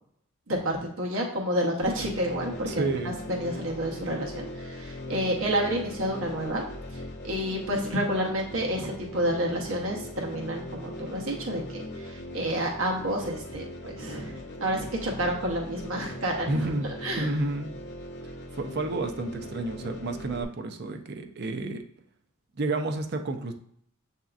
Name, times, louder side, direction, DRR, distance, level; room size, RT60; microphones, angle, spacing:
voice 1, 0.5-2.8 3.3-6.6 7.2-16.6 17.0-17.3, equal, 65° right, 0 dB, 1.0 m, -29 dB
sound 1, 1.8-20.4, left 1 dB, 55° left, 0.6 m, -40 dB
voice 2, 2.7-3.1 16.5-16.9 17.2-17.7 18.5-21.8 22.6-23.5, right 2 dB, 50° right, 6 dB, 0.5 m, -30 dB
7.7 x 2.8 x 2.4 m, 0.70 s
head